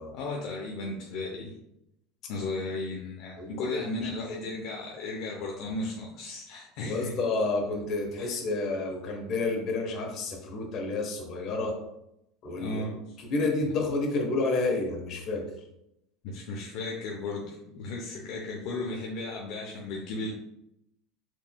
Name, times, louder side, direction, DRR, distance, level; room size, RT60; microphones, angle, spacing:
voice 1, 0.1-1.5 2.3-7.2 8.2-8.3 12.6-13.0 16.2-20.3, left 2 dB, 60° left, -1 dB, 0.6 m, -35 dB
voice 2, 3.4-4.3 5.4-5.5 6.8-11.7 12.4-12.8 13.2-15.4, left 3 dB, 40° left, 1 dB, 1.1 m, -30 dB
4.5 x 3.4 x 2.2 m, 0.81 s
supercardioid pair, 140°, 0 cm